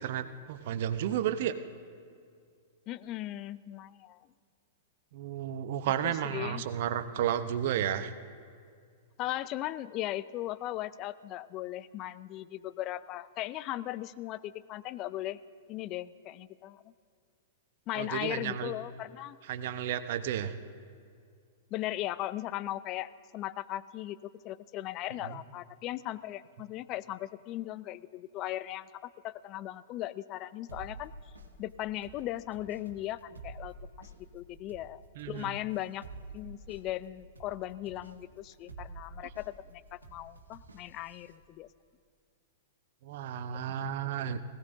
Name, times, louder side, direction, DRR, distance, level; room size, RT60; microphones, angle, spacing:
voice 1, 0.0-1.5 5.1-8.1 18.0-18.7 19.5-20.5 25.2-25.4 35.2-35.6 43.0-44.4, right 10 dB, 60° right, 10 dB, 0.8 m, -32 dB
voice 2, 2.9-4.2 6.0-6.7 9.2-15.4 15.7-16.8 17.9-19.4 21.7-24.2 24.4-31.1 31.6-35.0 35.3-36.0 36.3-41.7 43.7-43.8 44.2-44.3, left 14 dB, 40° left, 17 dB, 0.4 m, -38 dB
sound 1, 30.7-41.4, right 3 dB, 90° right, 1.4 m, -50 dB
20.0 x 16.5 x 2.6 m, 2.2 s
hypercardioid pair, 110°, 0 cm